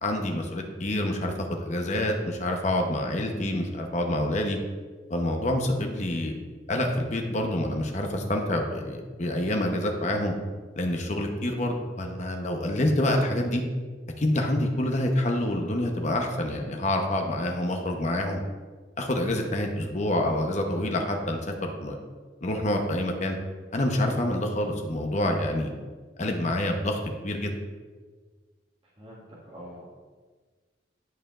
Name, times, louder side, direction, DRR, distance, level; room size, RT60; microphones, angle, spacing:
voice 1, 0.0-4.6 5.1-6.3 6.7-10.3 10.8-13.6 14.2-18.4 19.0-22.0 22.4-23.4 23.7-25.7 26.2-27.5, left 1 dB, 40° left, 3 dB, 0.9 m, -27 dB
voice 2, 29.0-29.9, equal, 30° right, -9 dB, 1.8 m, -45 dB
11.5 x 5.0 x 2.5 m, 1.4 s
head